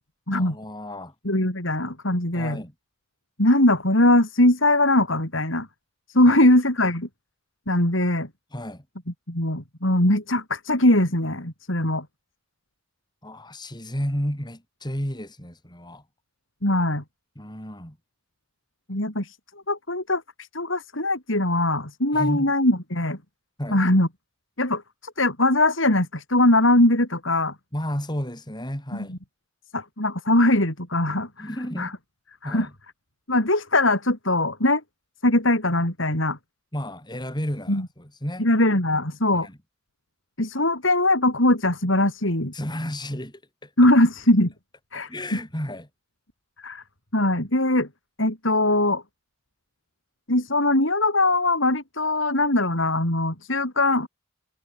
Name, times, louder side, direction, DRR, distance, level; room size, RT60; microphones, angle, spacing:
voice 1, 0.3-1.1 2.3-2.7 6.3-6.5 8.5-8.8 13.2-16.0 17.4-18.0 22.1-22.5 23.6-23.8 27.7-29.2 31.4-31.9 32.4-32.7 36.7-38.5 39.4-39.6 42.5-43.7 45.1-45.9, equal, 20° left, 7.9 m, -32 dB
voice 2, 1.2-2.6 3.4-5.7 6.1-7.1 7.7-8.3 9.3-12.0 16.6-17.0 18.9-19.4 19.7-23.2 23.7-24.1 24.6-27.5 28.9-29.2 29.7-31.5 31.8-31.9 32.4-32.7 33.3-34.8 35.2-36.4 37.7-37.9 38.4-39.5 40.4-42.5 43.8-44.5 44.9-45.1 46.6-46.8 47.1-47.9 48.2-49.0 50.3-54.1, left 1 dB, 65° left, 6.4 m, -21 dB
head